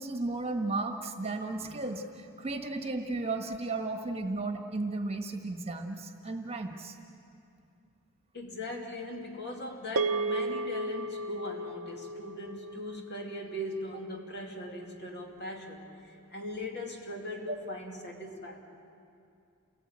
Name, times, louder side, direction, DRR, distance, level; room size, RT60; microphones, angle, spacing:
voice 1, 0.0-7.0 17.5-17.6, right 2 dB, 25° right, 5 dB, 1.4 m, -34 dB
voice 2, 8.3-18.6, left 1 dB, 50° left, 1 dB, 2.7 m, -40 dB
sound 1, 10.0-14.5, right 2 dB, 70° right, 0.8 m, -35 dB
29.0 x 18.0 x 8.8 m, 2.5 s
head